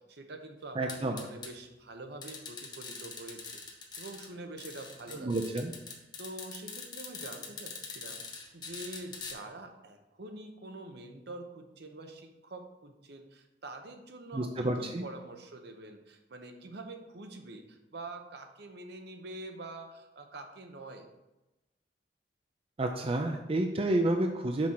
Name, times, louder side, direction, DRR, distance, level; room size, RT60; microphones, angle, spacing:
voice 1, 0.0-5.4 6.2-21.1, right 2 dB, 65° right, 5 dB, 0.9 m, -46 dB
voice 2, 0.8-1.2 5.2-5.7 14.3-15.0 22.8-24.7, right 1 dB, 30° right, 4 dB, 0.5 m, -30 dB
sound 1, 0.9-1.5 2.2-4.3 4.6-9.3, left 4 dB, 25° left, 1.1 m, -43 dB
6.0 x 4.3 x 6.2 m, 1.0 s
head